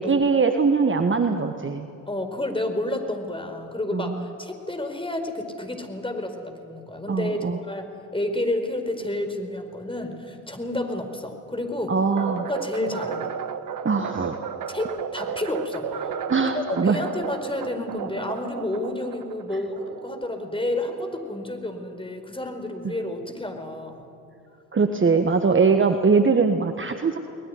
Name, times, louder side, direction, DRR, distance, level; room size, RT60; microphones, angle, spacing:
voice 1, 0.0-1.9 3.9-4.2 7.1-7.6 11.9-12.4 13.8-14.4 16.3-17.0 22.8-22.9 24.7-27.2, right 4 dB, 25° right, 7 dB, 1.5 m, -21 dB
voice 2, 2.1-12.0 12.5-13.3 14.7-24.1, left 1 dB, 10° left, 6 dB, 4.8 m, -30 dB
sound 1, 12.2-20.5, right 7 dB, 45° right, 1.5 m, -33 dB
22.0 x 20.0 x 9.6 m, 2.6 s
figure-of-eight pair, 50°, 44 cm